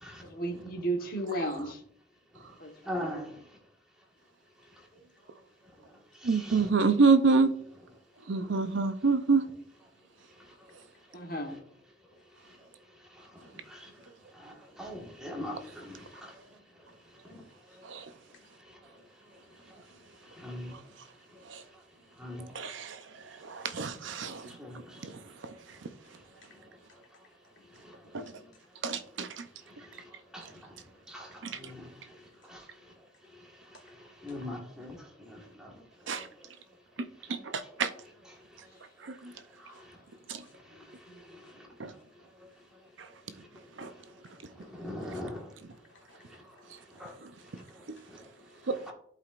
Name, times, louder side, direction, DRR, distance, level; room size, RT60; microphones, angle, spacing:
voice 1, 0.2-1.8 2.6-3.1 11.1-11.5 41.1-41.4, right 1 dB, 50° left, 1.2 m, -34 dB
voice 2, 2.8-3.4 6.2-6.7 13.2-13.3 13.6-13.9 14.3-16.4 17.3-17.4 20.3-20.8 22.2-22.5 24.5-25.1 27.8-27.9 29.9-30.0 30.3-30.5 31.1-31.9 32.4-32.6 34.0-35.7 36.0-36.3 39.6-40.0 41.3-41.4 44.7-45.4 47.0-47.1 47.5-47.6 48.1-48.2 48.9-49.0, left 1 dB, 5° right, 1.6 m, -41 dB
voice 3, 6.2-7.5 8.3-9.4 17.8-18.1 21.5-21.6 22.5-23.0 23.4-24.5 25.0-25.1 28.1-28.2 28.8-29.4 31.4-31.5 36.1-36.3 37.3-37.5 37.8-37.9 39.2-39.3 40.3-40.4 41.8-41.9 43.8-43.9 48.7-48.8, right 4 dB, 80° right, 0.6 m, -26 dB
voice 4, 45.7-46.2 46.5-47.3 47.8-48.5, left 2 dB, 85° left, 2.7 m, -63 dB
11.5 x 4.9 x 2.5 m
head